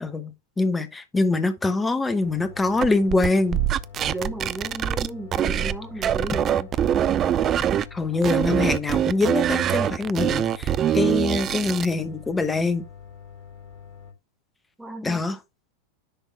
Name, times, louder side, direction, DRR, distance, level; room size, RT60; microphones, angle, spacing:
voice 1, 0.0-3.6 7.9-12.9 15.0-15.4, left 3 dB, 10° left, 0.9 m, -24 dB
sound 1, 2.2-14.1, left 7 dB, 50° left, 2.8 m, -45 dB
sound 2, 2.8-5.8 6.0-7.8 8.2-11.9, right 10 dB, 30° right, 0.4 m, -23 dB
voice 2, 4.1-6.7 14.8-15.2, right 1 dB, 5° right, 1.6 m, -34 dB
10.0 x 3.6 x 3.3 m
figure-of-eight pair, 90°, 0 cm